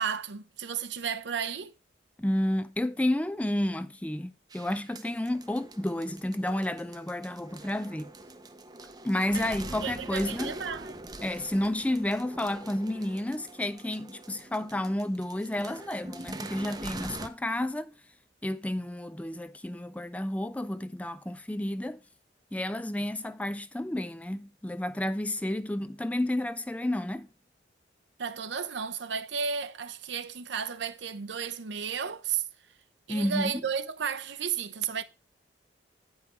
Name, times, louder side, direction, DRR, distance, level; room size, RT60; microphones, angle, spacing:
voice 1, 0.0-1.7 9.3-9.5 9.8-11.0 28.2-32.5 33.1-35.0, right 7 dB, 75° right, 0.7 m, -33 dB
voice 2, 2.2-8.1 9.0-10.5 11.2-17.9 18.4-22.0 22.5-27.3 33.1-33.6, left 1 dB, 5° left, 0.3 m, -31 dB
sound 1, 4.5-17.3, right 2 dB, 20° right, 0.7 m, -44 dB
9.1 x 5.5 x 4.3 m
head